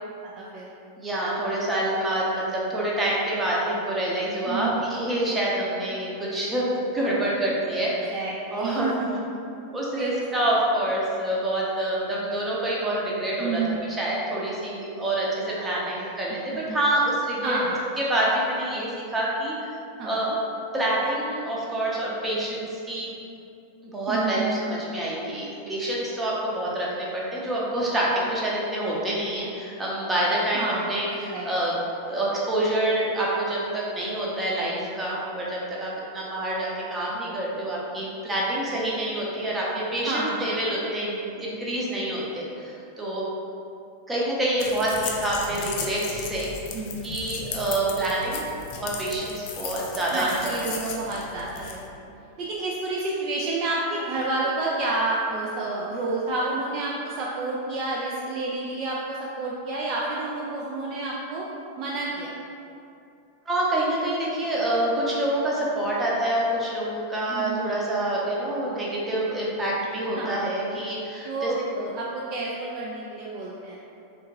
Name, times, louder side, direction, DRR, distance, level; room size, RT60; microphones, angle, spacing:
voice 1, 0.2-0.7 4.5-4.9 7.7-9.2 10.0-10.2 10.6-10.7 13.4-13.8 15.5-16.1 16.7-16.8 17.4-17.8 20.0-20.3 24.1-24.7 30.5-31.5 40.1-40.5 46.7-47.1 50.1-51.9 52.4-61.5 61.8-62.4 67.3-67.8 70.2-70.6 71.2-73.8, right 3 dB, 40° right, -5 dB, 0.3 m, -30 dB
voice 2, 1.0-6.7 6.9-7.9 8.5-8.9 9.7-13.6 14.0-17.6 18.0-19.5 20.0-20.3 20.7-23.1 23.9-31.7 32.1-43.2 44.1-46.5 47.0-48.4 48.8-50.5 63.5-71.5, right 1 dB, 15° right, -5 dB, 0.7 m, -27 dB
sound 1, 44.6-51.8, left 5 dB, 45° left, 0.3 m, -36 dB
3.5 x 2.4 x 2.9 m, 2.6 s
figure-of-eight pair, 90°, 0 cm